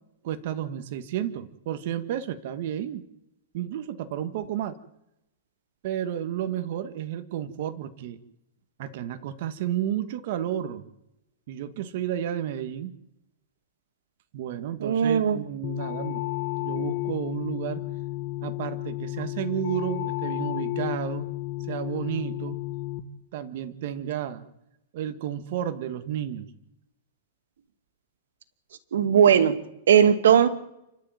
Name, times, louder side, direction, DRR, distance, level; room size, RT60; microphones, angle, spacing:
voice 1, 0.2-3.0 3.5-4.8 5.8-8.2 8.8-10.9 11.5-13.0 14.3-16.2 16.6-17.8 18.4-21.3 21.7-22.6 23.3-24.4 24.9-26.5, right 10 dB, 40° right, 9 dB, 1.6 m, -32 dB
voice 2, 14.8-15.4 28.9-29.5 29.9-30.5, right 8 dB, 90° right, 11 dB, 2.5 m, -18 dB
sound 1, 15.6-23.0, left 18 dB, 45° left, 1.7 m, -32 dB
30.0 x 12.0 x 9.3 m, 0.85 s
supercardioid pair, 175°, 0 cm